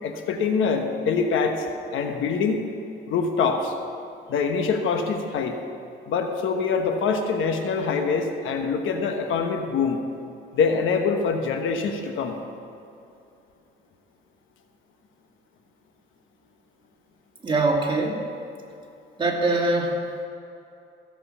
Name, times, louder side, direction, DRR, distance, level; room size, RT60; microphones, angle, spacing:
voice 1, 0.0-1.7 1.9-2.6 3.1-3.7 4.3-5.6 6.1-10.0 10.5-12.4, left 5 dB, 80° left, 5 dB, 1.2 m, -24 dB
voice 2, 17.4-18.2 19.2-20.0, right 2 dB, 25° right, -2 dB, 2.6 m, -22 dB
15.5 x 7.9 x 5.6 m, 2.6 s
cardioid pair, 90°, 20 cm